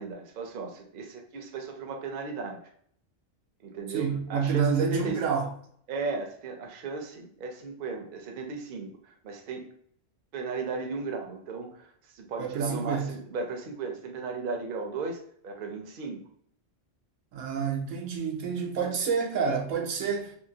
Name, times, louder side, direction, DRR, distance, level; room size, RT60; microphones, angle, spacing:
voice 1, 0.0-2.6 3.6-5.2 5.9-9.7 10.3-11.9 12.1-15.2 15.4-16.2, right 3 dB, 55° right, 0.7 m, -35 dB
voice 2, 3.9-5.5 12.4-13.2 17.3-20.4, right 6 dB, 90° right, 1.0 m, -28 dB
2.8 x 2.7 x 2.6 m
omnidirectional pair, 1.3 m